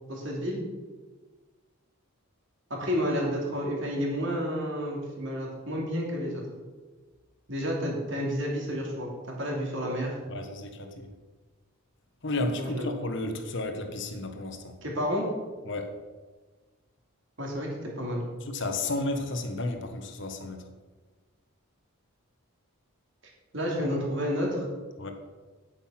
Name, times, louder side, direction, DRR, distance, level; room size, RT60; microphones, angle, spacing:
voice 1, 0.1-0.6 2.7-6.4 7.5-10.2 12.5-12.9 14.8-15.3 17.4-18.3 23.5-24.6, equal, 55° right, -1 dB, 2.9 m, -30 dB
voice 2, 10.3-11.1 12.2-14.8 15.7-15.9 18.5-20.6 25.0-25.1, left 2 dB, 55° left, 6 dB, 1.2 m, -32 dB
9.3 x 8.7 x 5.8 m, 1.3 s
head